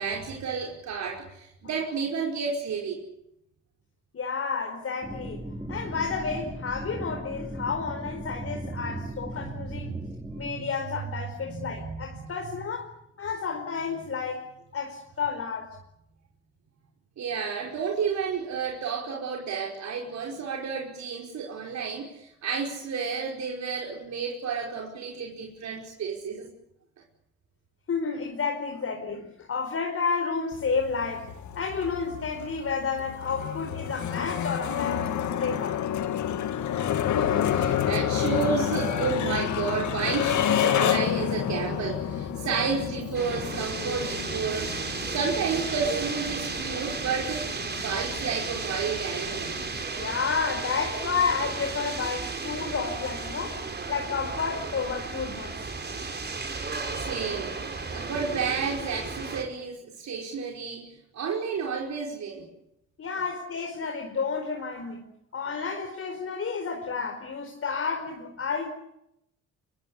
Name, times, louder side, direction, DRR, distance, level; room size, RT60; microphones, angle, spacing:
voice 1, 0.0-3.0 8.8-9.5 10.3-10.6 11.4-12.3 17.2-26.5 37.2-49.5 56.5-62.5, right 5 dB, 65° right, 0 dB, 5.3 m, -31 dB
voice 2, 4.1-5.4 5.7-9.9 10.4-12.9 13.2-14.5 14.7-15.8 27.9-35.8 50.0-53.6 53.9-55.6 63.0-65.0 65.3-68.7, left 5 dB, 50° left, 3 dB, 4.8 m, -31 dB
sound 1, 5.0-10.5, right 1 dB, 10° right, 5.4 m, -38 dB
sound 2, 30.5-49.8, left 10 dB, 75° left, 2.2 m, -30 dB
sound 3, 43.1-59.4, right 4 dB, 35° right, 5.3 m, -34 dB
23.5 x 23.5 x 8.6 m, 0.80 s
cardioid pair, 90°, 30 cm